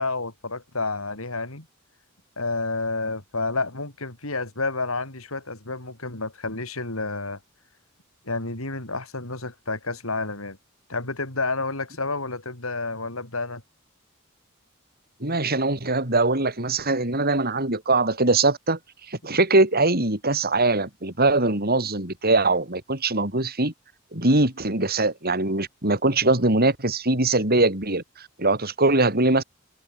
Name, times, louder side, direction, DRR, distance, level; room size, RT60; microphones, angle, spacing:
voice 1, 0.0-1.7 2.4-7.4 8.2-10.6 10.9-13.6, left 3 dB, 80° left, 5.6 m, -30 dB
voice 2, 15.2-18.8 19.1-23.7 24.1-29.4, right 2 dB, 45° right, 7.9 m, -22 dB
head